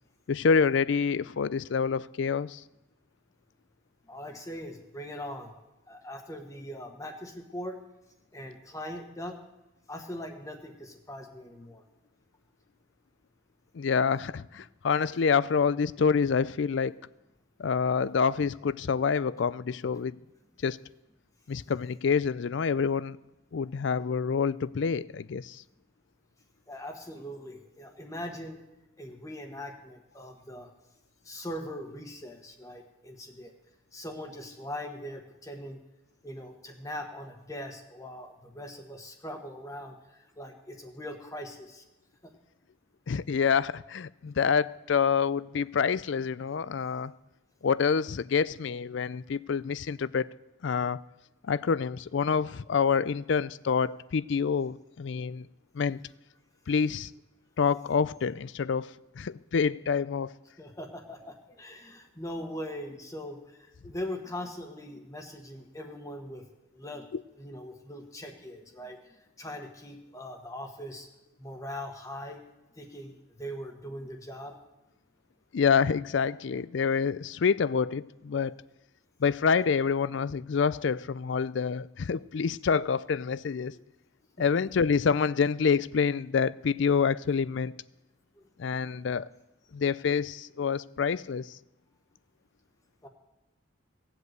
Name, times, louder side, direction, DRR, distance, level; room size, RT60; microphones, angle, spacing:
voice 1, 0.3-2.6 13.7-17.0 17.6-20.2 20.6-20.8 21.5-23.2 23.5-25.6 43.1-47.1 47.6-50.3 50.6-51.0 51.5-55.5 55.7-56.0 56.7-57.1 57.6-60.3 67.1-67.2 75.5-78.5 79.2-83.7 84.4-87.7 88.6-89.3 89.7-91.6, left 6 dB, 65° left, 0.4 m, -27 dB
voice 2, 4.1-5.5 5.9-7.8 8.3-9.4 9.9-11.8 26.7-28.6 29.0-30.7 31.2-33.5 33.9-35.8 36.2-41.8 42.2-42.3 60.6-66.4 66.7-67.0 67.3-71.1 71.4-72.4 72.8-74.5 83.6-83.8 84.4-84.5 88.4-88.5 93.0-93.1, left 1 dB, 15° left, 1.3 m, -41 dB
17.5 x 8.0 x 8.0 m
head